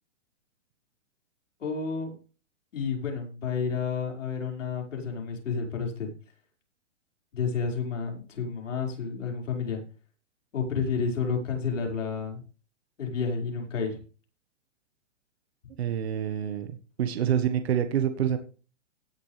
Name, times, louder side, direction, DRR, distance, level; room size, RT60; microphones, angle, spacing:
voice 1, 1.6-2.2 2.7-6.1 7.3-9.8 10.5-12.4 13.0-14.0, left 5 dB, 80° left, 2 dB, 5.2 m, -30 dB
voice 2, 15.8-18.4, right 9 dB, 55° right, 8 dB, 1.5 m, -27 dB
17.5 x 7.3 x 3.3 m, 0.35 s
hypercardioid pair, 165°, 37 cm